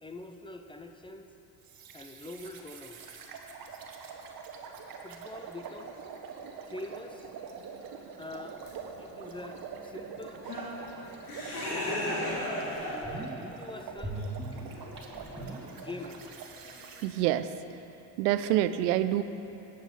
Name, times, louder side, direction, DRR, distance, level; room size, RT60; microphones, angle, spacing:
voice 1, 0.0-1.3 1.9-3.1 5.0-6.0 6.6-7.3 8.2-8.6 9.0-10.5 11.6-14.2 15.8-16.4, left 2 dB, 10° left, 6 dB, 0.6 m, -44 dB
sound 1, 1.7-17.1, right 6 dB, 45° right, 1.2 m, -45 dB
sound 2, 8.7-8.8 9.4-9.5 10.2-13.3 13.6-16.9, left 1 dB, 70° left, 2.6 m, -37 dB
sound 3, 12.3-12.4 12.7-13.5 14.0-16.2 16.5-16.6, right 2 dB, 10° right, 2.2 m, -40 dB
voice 2, 17.0-17.5 18.2-19.2, right 13 dB, 70° right, 12 dB, 0.6 m, -26 dB
17.5 x 6.3 x 3.9 m, 2.9 s
figure-of-eight pair, 55°, 49 cm